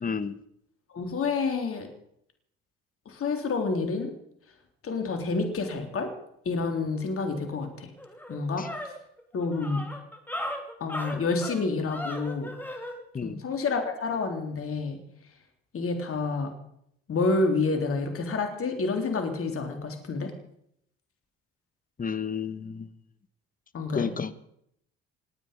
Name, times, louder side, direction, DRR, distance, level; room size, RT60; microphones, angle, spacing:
voice 1, 0.0-0.4 8.6-8.7 13.1-13.4 22.0-22.9 23.9-24.3, left 6 dB, 30° left, 14 dB, 1.3 m, -31 dB
voice 2, 0.9-1.9 3.1-4.1 4.8-6.1 6.5-7.9 8.3-8.9 9.3-9.9 10.8-12.5 13.2-15.0 15.7-16.5 17.1-20.3 23.7-24.1, left 3 dB, 45° left, 5 dB, 3.6 m, -28 dB
sound 1, 7.5-7.6 8.0-13.0, left 1 dB, 5° left, 3.4 m, -37 dB
28.0 x 9.5 x 5.3 m, 0.73 s
hypercardioid pair, 65°, 30 cm